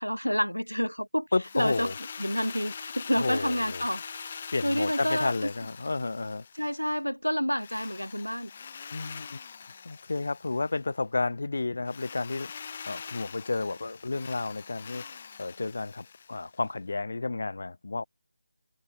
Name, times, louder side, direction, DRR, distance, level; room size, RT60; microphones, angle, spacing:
voice 1, 0.0-1.3 1.5-1.9 2.2-4.4 4.6-5.5 6.6-8.5, equal, 85° left, 3.5 m, -29 dB
voice 2, 1.3-1.9 3.1-3.8 4.5-6.4 8.9-9.4 9.8-12.5 12.9-18.0, left 3 dB, 55° left, 3.5 m, -31 dB
Drill, 1.4-6.9 7.6-10.9 11.9-16.7, left 6 dB, 30° left, 5.3 m, -43 dB
figure-of-eight pair, 155°, 0 cm